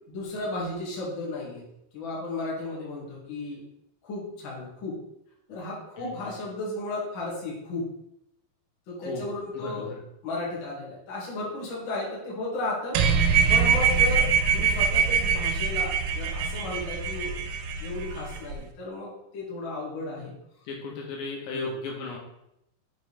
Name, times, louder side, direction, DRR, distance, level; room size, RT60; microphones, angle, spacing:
voice 1, 0.1-1.6 1.9-3.6 4.0-5.0 5.5-7.9 8.9-9.9 10.2-14.3 14.5-17.3 17.8-20.3 21.5-21.8, left 2 dB, 40° left, -6 dB, 2.0 m, -34 dB
voice 2, 6.0-6.3 9.1-9.2 9.5-10.0 20.7-22.2, left 3 dB, 75° left, -1 dB, 3.5 m, -35 dB
sound 1, 13.0-18.6, right 6 dB, 85° right, 3.2 m, -24 dB
7.5 x 5.5 x 3.4 m, 0.80 s
omnidirectional pair, 5.4 m